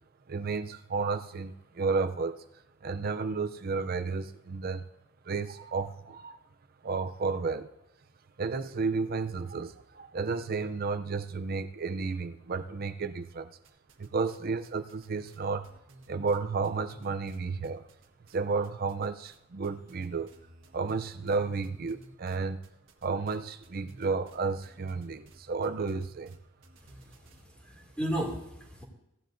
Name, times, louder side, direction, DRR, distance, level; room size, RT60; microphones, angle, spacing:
voice 1, 0.3-2.4 2.8-4.8 5.3-6.4 6.8-7.7 8.4-13.5 14.0-15.7 16.1-17.8 18.3-20.3 20.7-22.6 23.0-26.4, right 4 dB, 50° right, 10 dB, 0.5 m, -32 dB
sound 1, 13.6-14.4 14.6-18.4 18.6-19.4 19.6-27.4, right 1 dB, 80° right, 1.4 m, -55 dB
voice 2, 26.8-28.8, right 1 dB, 5° left, -3 dB, 2.5 m, -36 dB
16.5 x 10.5 x 2.6 m, 0.91 s
head